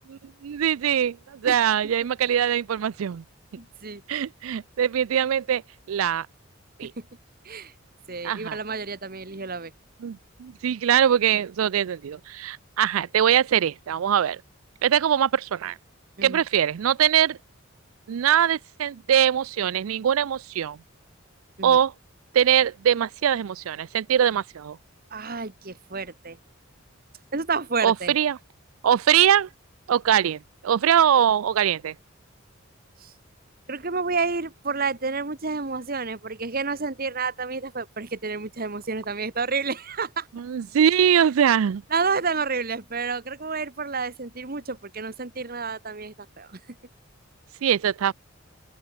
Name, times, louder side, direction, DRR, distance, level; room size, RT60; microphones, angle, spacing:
voice 1, 0.1-3.2 4.1-5.6 5.9-6.3 6.8-6.9 8.2-8.6 10.0-14.4 14.8-15.8 16.2-17.4 18.1-20.8 21.6-21.9 22.3-24.8 27.8-28.4 28.8-29.5 29.9-31.9 40.4-41.8 47.6-48.1, right 9 dB, 80° right, 0.4 m, -22 dB
voice 2, 3.6-4.0 6.8-6.9 7.4-7.7 8.1-9.7 16.2-16.4 21.6-21.8 25.1-26.4 27.3-28.1 33.0-33.1 33.7-40.3 41.9-46.6, right 4 dB, 45° right, 1.4 m, -30 dB
open air
head